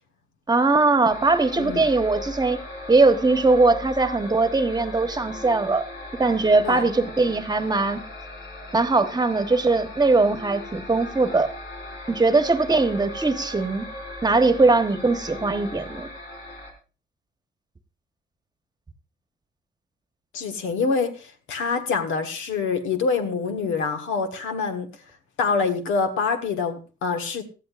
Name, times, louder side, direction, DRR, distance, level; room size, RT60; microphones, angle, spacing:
voice 1, 0.5-2.6 2.9-5.8 6.2-8.0 8.7-11.5 12.1-13.9 14.2-16.1, right 3 dB, 20° right, 1.1 m, -20 dB
sound 1, 1.1-16.7, left 2 dB, 75° left, 4.3 m, -38 dB
voice 2, 1.6-1.9 6.6-6.8 20.3-24.9 25.4-27.4, left 5 dB, 90° left, 1.5 m, -26 dB
18.0 x 13.0 x 2.5 m
cardioid pair, 90°, 20 cm